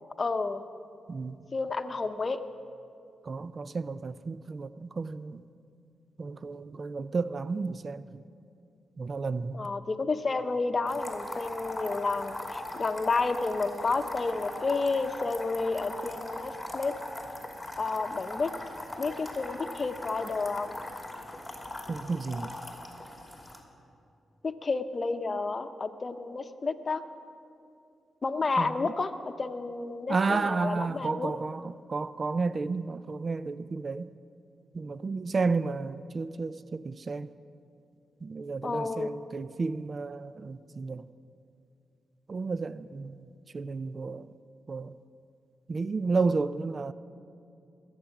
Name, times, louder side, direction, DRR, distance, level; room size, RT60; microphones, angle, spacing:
voice 1, 0.2-0.6 1.5-2.4 9.5-16.9 17.8-18.5 19.0-20.8 24.4-27.0 28.2-31.3 38.6-39.1, left 3 dB, 45° left, 0.8 m, -31 dB
voice 2, 3.2-5.4 6.2-8.2 9.0-9.7 21.9-22.5 28.6-28.7 30.1-34.1 34.7-37.3 38.2-41.1 42.3-44.3 44.7-45.0 45.7-46.9, right 4 dB, 50° right, 0.4 m, -32 dB
sound 1, 10.9-23.6, left 1 dB, 10° left, 2.7 m, -40 dB
21.5 x 9.0 x 5.9 m
cardioid pair, 60°, 0 cm